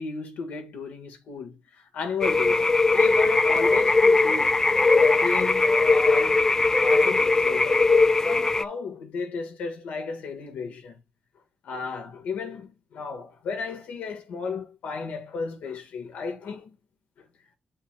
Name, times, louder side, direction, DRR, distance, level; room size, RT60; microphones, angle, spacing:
voice 1, 0.0-4.6 5.0-6.5 6.8-7.9 8.2-11.0 11.6-16.7, left 5 dB, 90° left, 1.7 m, -34 dB
sound 1, 2.2-8.6, left 3 dB, 20° left, 0.4 m, -20 dB
9.0 x 5.4 x 2.4 m
cardioid pair, 100°, 3 cm